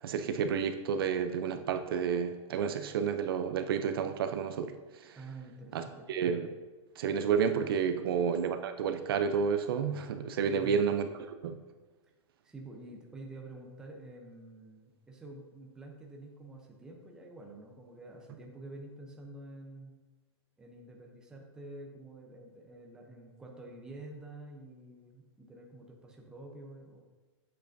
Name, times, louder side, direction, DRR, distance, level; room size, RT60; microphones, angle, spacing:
voice 1, 0.0-5.2 5.7-5.8 6.1-6.5 7.0-11.1 11.4-11.6, right 7 dB, 50° right, 8 dB, 0.5 m, -30 dB
voice 2, 5.1-6.1 7.9-8.1 10.5-10.9 12.4-19.9 20.6-27.0, right 2 dB, 5° right, 0 dB, 0.6 m, -48 dB
9.0 x 7.6 x 2.6 m, 1.3 s
supercardioid pair, 170°, 16 cm